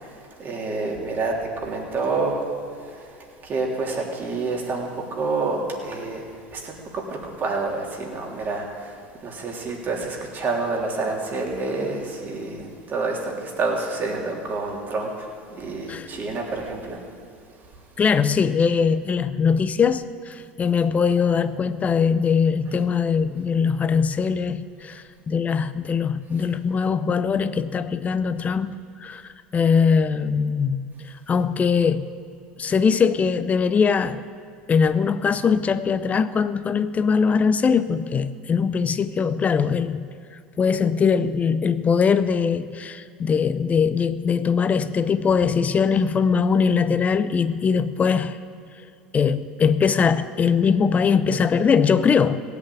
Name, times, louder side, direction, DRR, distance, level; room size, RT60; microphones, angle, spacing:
voice 1, 0.4-1.3 1.6-2.4 3.4-4.9 5.1-6.2 6.5-8.9 9.2-15.1 15.5-17.0, right 3 dB, 40° right, 0 dB, 3.4 m, -28 dB
voice 2, 18.0-29.2 29.5-30.9 31.3-32.1 32.6-34.2 34.7-40.1 40.6-48.4 49.1-52.4, left 6 dB, 30° left, 13 dB, 0.6 m, -21 dB
17.0 x 8.3 x 8.6 m, 2.4 s
hypercardioid pair, 90°, 5 cm